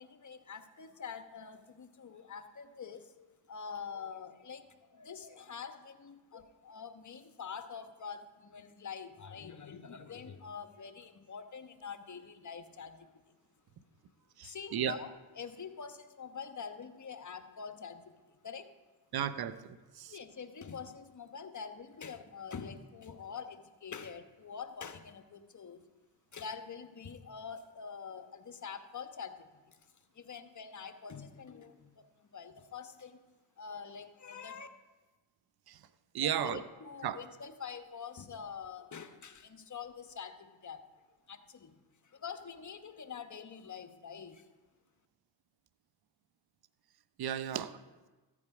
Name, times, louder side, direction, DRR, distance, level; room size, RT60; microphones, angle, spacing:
voice 1, 0.0-13.1 14.4-18.1 18.4-18.7 20.1-25.8 26.3-29.8 30.1-33.2 33.6-34.7 36.2-40.8 41.3-41.8 42.0-44.5, left 6 dB, 35° left, 8 dB, 1.3 m, -45 dB
voice 2, 14.4-15.0 19.1-20.1 35.7-35.8 36.1-36.6 37.0-37.2 47.2-47.7, right 10 dB, 50° right, 14 dB, 0.9 m, -34 dB
14.0 x 8.6 x 5.0 m, 1.2 s
supercardioid pair, 60°, 48 cm